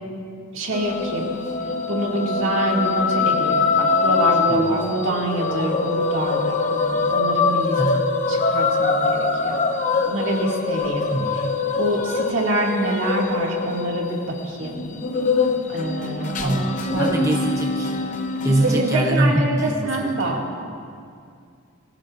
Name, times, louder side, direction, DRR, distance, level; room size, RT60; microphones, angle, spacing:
voice 1, 0.5-1.3 1.9-7.8 8.3-9.6 10.1-11.0 11.8-14.2 14.6-14.8 15.7-16.6 16.9-17.3 18.5-20.4, right 1 dB, 65° right, -1 dB, 2.2 m, -25 dB
sound 1, 0.7-19.0, left 4 dB, 35° left, 0.7 m, -23 dB
voice 2, 4.5-4.8 7.8-8.1 11.1-11.6 16.4-18.0 18.4-20.4, right 1 dB, 15° right, 1 dB, 0.6 m, -24 dB
23.0 x 16.0 x 2.5 m, 2.3 s
head